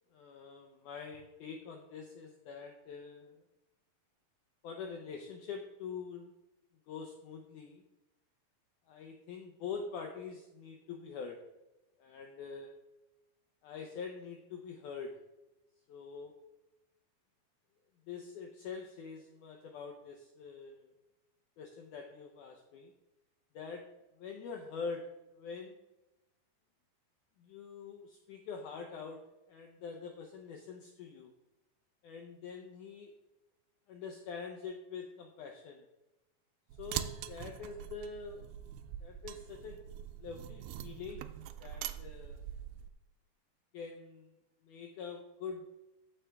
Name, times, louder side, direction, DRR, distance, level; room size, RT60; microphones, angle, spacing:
voice 1, 0.1-3.4 4.6-6.3 6.9-7.8 8.9-11.4 12.0-12.7 13.6-15.2 15.9-16.3 18.1-20.9 21.6-22.9 23.5-23.8 24.2-25.8 27.4-29.2 29.5-31.3 32.0-33.1 33.9-35.8 36.8-38.5 39.0-39.8 40.2-41.3 41.6-42.4 43.7-44.3 44.6-45.8, left 5 dB, 80° left, 3 dB, 1.8 m, -45 dB
sound 1, 36.7-42.9, right 11 dB, 90° right, 1.9 m, -43 dB
14.5 x 5.0 x 3.4 m, 0.94 s
omnidirectional pair, 4.5 m